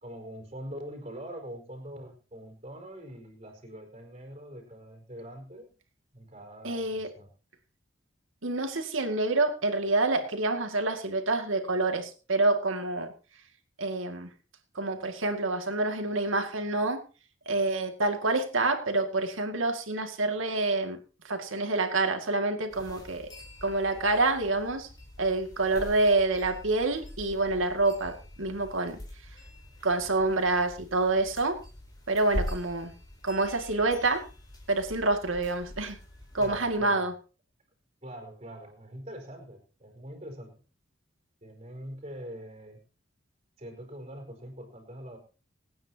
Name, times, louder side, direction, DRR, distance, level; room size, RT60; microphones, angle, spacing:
voice 1, 0.0-5.7 6.1-7.3 25.7-26.0 36.4-37.1 38.0-40.6 41.4-42.8 43.6-45.2, equal, 35° right, 4 dB, 4.6 m, -43 dB
voice 2, 6.6-7.1 8.4-13.1 13.8-14.3 14.7-17.0 17.5-23.3 23.6-24.9 25.2-29.0 29.8-31.6 32.1-32.9 33.2-34.2 34.7-36.0 36.3-37.1, right 2 dB, 90° right, 5 dB, 2.3 m, -27 dB
sound 1, 22.7-36.8, left 1 dB, 20° left, 4.3 m, -43 dB
25.5 x 9.5 x 2.9 m, 0.34 s
head